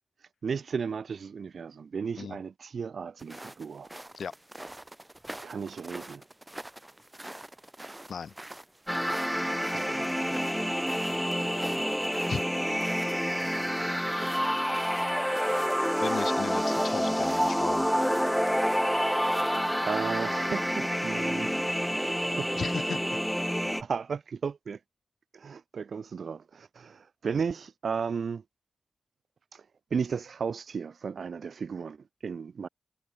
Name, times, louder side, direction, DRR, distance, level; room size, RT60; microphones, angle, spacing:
voice 1, 0.2-3.9 5.4-6.2 9.7-10.5 13.8-14.0 19.9-21.7 21.9-22.5 23.8-24.8 25.3-28.4 29.5-29.6 29.9-32.0 32.2-32.7, right 6 dB, 80° right, 0.5 m, -35 dB
sound 1, 3.2-19.7, right 1 dB, 15° right, 1.4 m, -46 dB
sound 2, 8.9-23.8, equal, ahead, 0.4 m, -28 dB
voice 2, 16.0-17.9 22.5-23.2, left 6 dB, 85° left, 2.6 m, -36 dB
cardioid pair, 70°, 0 cm